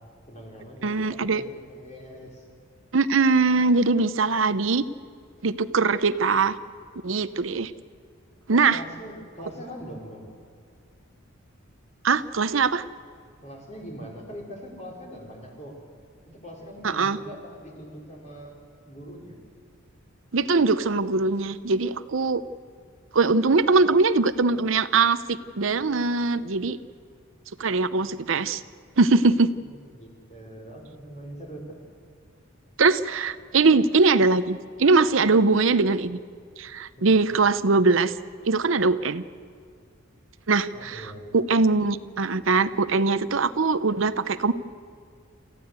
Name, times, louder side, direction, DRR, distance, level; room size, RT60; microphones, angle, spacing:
voice 1, 0.3-2.5 8.5-10.3 13.4-15.8 16.3-18.6 18.8-19.4 29.8-31.6 37.0-37.4 40.7-41.7, equal, 35° left, -1 dB, 4.9 m, -42 dB
voice 2, 0.8-1.4 2.9-4.8 5.4-6.6 7.0-7.7 8.5-8.8 12.0-12.8 16.8-17.2 20.3-22.4 23.1-26.8 27.6-28.6 29.0-29.5 32.8-36.2 36.6-38.1 38.5-39.2 40.5-44.5, right 4 dB, 70° right, 13 dB, 0.7 m, -21 dB
28.0 x 15.0 x 8.1 m, 2.3 s
head